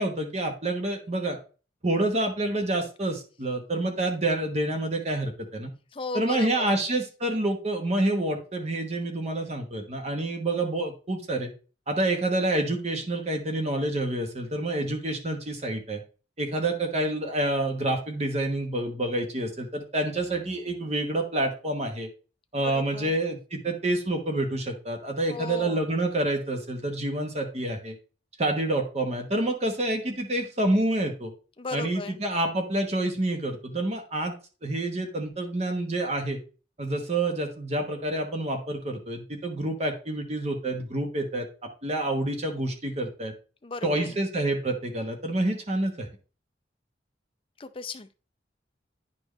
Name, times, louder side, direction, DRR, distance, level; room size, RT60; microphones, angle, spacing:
voice 1, 0.0-1.4 1.8-5.7 6.1-11.5 11.9-16.0 16.4-22.1 22.5-28.0 28.4-31.3 31.7-34.3 34.6-36.4 36.8-41.5 41.8-43.3 43.8-46.1, right 1 dB, 35° right, 1.1 m, -28 dB
voice 2, 5.9-6.7 22.6-23.1 25.3-25.8 31.6-32.2 43.6-44.2 47.6-48.1, left 3 dB, 30° left, 0.5 m, -36 dB
10.0 x 4.4 x 3.2 m
head